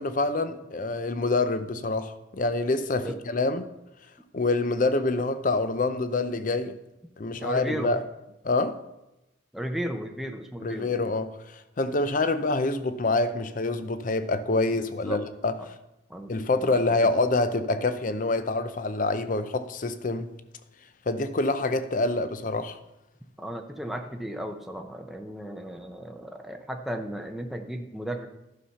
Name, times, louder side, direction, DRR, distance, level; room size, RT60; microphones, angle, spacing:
voice 1, 0.0-3.7 4.3-6.8 7.2-8.0 8.4-8.8 10.6-15.7 16.3-20.3 21.1-22.8, left 2 dB, 45° left, 0.6 m, -26 dB
voice 2, 7.4-7.9 9.5-10.9 14.8-15.2 15.6-15.7 16.1-16.3 16.6-17.1 23.4-28.3, right 1 dB, ahead, 0.5 m, -35 dB
11.5 x 5.7 x 5.6 m
head